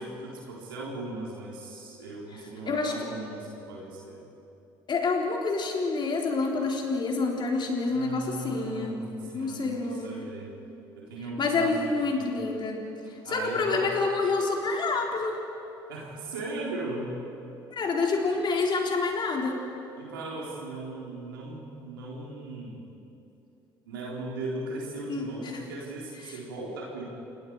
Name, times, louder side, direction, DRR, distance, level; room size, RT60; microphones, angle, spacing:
voice 1, 0.0-4.2 7.8-10.5 11.0-12.3 13.2-14.0 15.9-17.1 20.0-22.8 23.9-27.1, right 2 dB, 80° right, -4 dB, 4.1 m, -38 dB
voice 2, 4.9-9.0 9.3-10.3 11.4-12.8 13.3-15.4 17.7-19.6 25.1-25.6 26.3-26.4, left 3 dB, 40° left, 1 dB, 4.0 m, -28 dB
28.0 x 20.0 x 4.9 m, 2.8 s
hypercardioid pair, 60°, 11 cm